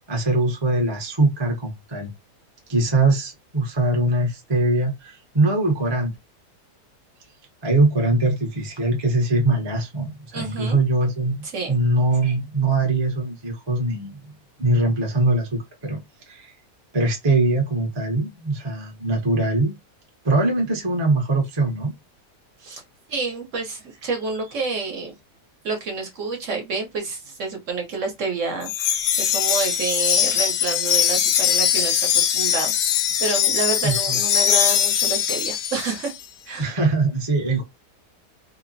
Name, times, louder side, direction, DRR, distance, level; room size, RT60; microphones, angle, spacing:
voice 1, 0.1-2.1 2.7-6.1 7.6-11.4 11.7-14.2 14.6-16.0 16.3-16.5 16.9-19.7 20.2-21.9 33.8-34.2 36.6-37.6, right 2 dB, 40° right, 0.3 m, -22 dB
voice 2, 10.3-10.8 11.4-11.7 22.6-22.8 23.1-25.1 25.6-36.1 36.5-36.8, right 4 dB, 60° right, 0.9 m, -29 dB
Wind chime, 28.6-36.1, left 9 dB, 80° left, 0.6 m, -21 dB
3.1 x 2.0 x 2.5 m
omnidirectional pair, 1.8 m